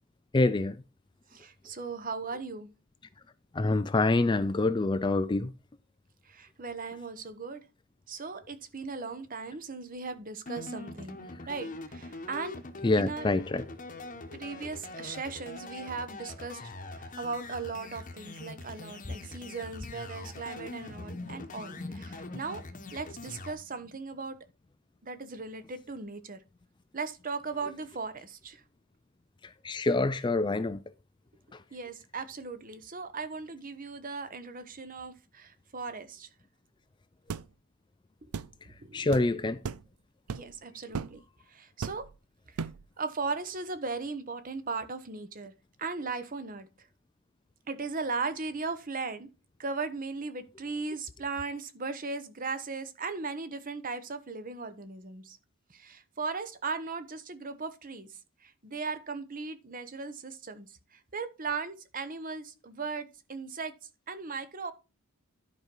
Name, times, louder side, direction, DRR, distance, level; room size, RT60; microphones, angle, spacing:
voice 1, 0.3-0.8 3.5-5.5 12.8-13.7 19.1-19.2 21.0-21.5 21.8-22.4 29.4-30.8 31.5-31.6 38.9-39.6, left 2 dB, 20° left, 0.4 m, -27 dB
voice 2, 1.3-2.7 6.3-7.6 8.1-11.2 11.5-12.6 13.0-13.3 14.3-16.6 16.9-22.6 22.9-24.4 25.0-26.4 26.9-28.6 31.7-36.3 38.8-39.1 40.3-41.2 41.5-42.1 43.0-45.5 45.8-46.7 47.7-49.3 49.6-55.4 55.7-58.1 58.4-60.7 60.9-63.7 64.1-64.7, right 4 dB, 40° right, 1.0 m, -37 dB
sound 1, 10.5-23.5, left 2 dB, 35° left, 1.1 m, -43 dB
sound 2, 37.3-37.5 38.3-38.5 39.1-39.3 39.6-39.9 40.3-40.5 40.9-41.2 41.8-42.2 42.6-42.9, right 5 dB, 80° right, 0.5 m, -36 dB
11.0 x 5.3 x 4.5 m
head